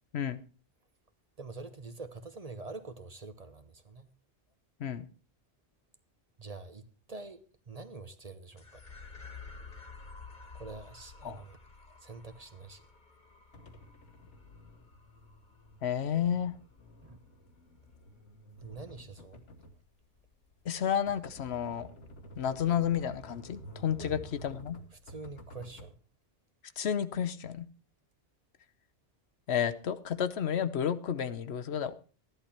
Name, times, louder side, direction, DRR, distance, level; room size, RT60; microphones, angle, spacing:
voice 1, 1.4-4.1 6.4-7.4 7.7-8.8 10.5-11.6 12.0-12.8 17.0-17.2 18.6-19.4 24.0-24.3 24.9-25.9, right 3 dB, 35° right, 1.0 m, -45 dB
sound 1, 8.6-17.2, left 4 dB, 40° left, 1.7 m, -52 dB
sound 2, 13.5-25.9, equal, 85° left, 1.7 m, -51 dB
voice 2, 15.8-16.5 20.7-21.9 22.4-24.8 26.8-27.7 29.5-31.9, left 8 dB, 70° left, 1.0 m, -31 dB
13.5 x 11.0 x 4.3 m
omnidirectional pair, 1.2 m